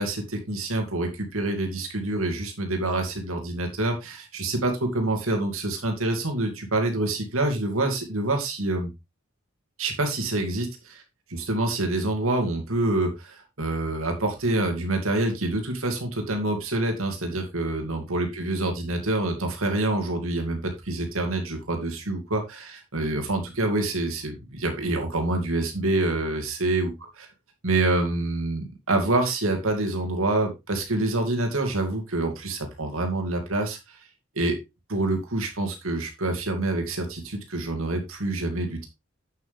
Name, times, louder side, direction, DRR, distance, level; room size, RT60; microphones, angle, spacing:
voice 1, 0.0-8.9 9.8-11.0 11.3-26.9 27.6-33.8 34.4-34.6 34.9-38.9, right 2 dB, 80° right, 4 dB, 2.4 m, -26 dB
8.3 x 7.8 x 3.4 m, 0.23 s
head